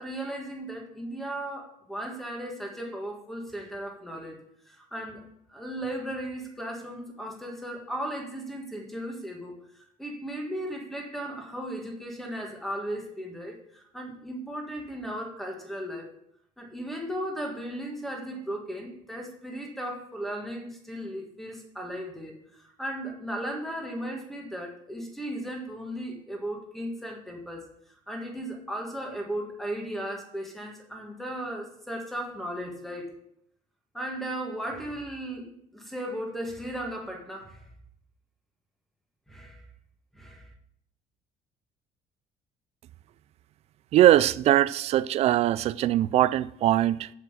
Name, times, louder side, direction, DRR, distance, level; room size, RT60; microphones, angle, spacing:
voice 1, 0.0-4.4 4.6-16.1 16.6-33.1 33.9-37.7 39.3-39.6 40.1-40.5, right 1 dB, ahead, 1.6 m, -36 dB
voice 2, 43.9-47.1, right 13 dB, 45° right, 0.4 m, -21 dB
7.7 x 7.4 x 6.7 m
cardioid pair, 180°, 15 cm